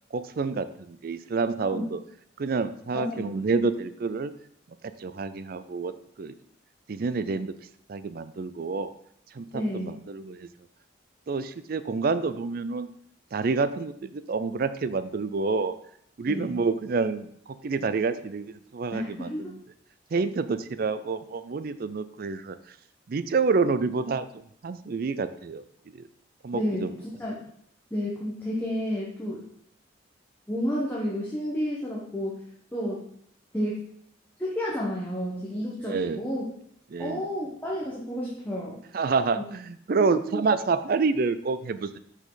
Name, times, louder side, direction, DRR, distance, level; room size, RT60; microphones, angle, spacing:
voice 1, 0.1-2.0 2.4-4.3 5.0-5.9 6.2-6.3 6.9-7.5 7.9-8.9 9.3-10.5 11.3-12.9 13.3-15.7 16.2-17.3 17.6-19.3 20.1-22.6 23.1-24.3 24.6-25.6 25.9-26.1 26.4-26.9 35.8-36.2 36.9-37.2 38.9-42.0, right 4 dB, 50° right, 13 dB, 0.4 m, -28 dB
voice 2, 2.9-3.4 9.5-10.0 16.3-16.6 18.9-19.6 26.5-27.4 27.9-29.4 30.5-32.4 32.7-33.1 33.5-33.8 34.4-36.4 37.0-38.8 39.4-39.5 40.0-40.4, equal, 10° left, -5 dB, 0.9 m, -31 dB
6.3 x 5.3 x 3.9 m, 0.68 s
head